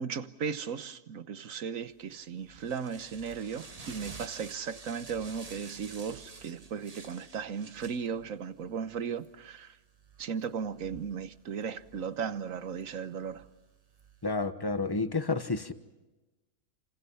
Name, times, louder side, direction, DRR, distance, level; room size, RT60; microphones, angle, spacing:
voice 1, 0.0-9.8 10.2-13.5, right 6 dB, 65° right, 1.4 m, -36 dB
sound 1, 1.9-14.4, right 4 dB, 25° right, 1.1 m, -51 dB
voice 2, 14.2-15.7, left 3 dB, 15° left, 1.2 m, -30 dB
29.5 x 27.0 x 5.7 m
omnidirectional pair, 1.5 m